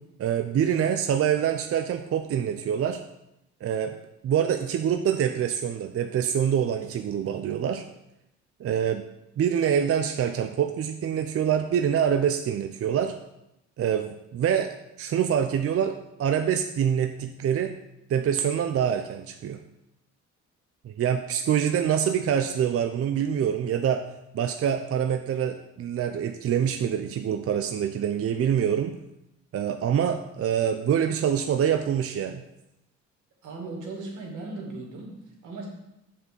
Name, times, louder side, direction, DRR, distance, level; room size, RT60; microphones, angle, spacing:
voice 1, 0.2-3.0 3.6-4.0 4.2-7.8 8.6-9.0 9.4-13.1 13.8-17.7 18.1-19.6 20.8-24.0 24.3-28.9 29.5-32.4, right 8 dB, 50° right, 7 dB, 0.6 m, -25 dB
voice 2, 33.4-35.7, right 3 dB, 80° right, -1 dB, 2.4 m, -37 dB
7.5 x 4.5 x 6.8 m, 0.87 s
cardioid pair, 90°, 30 cm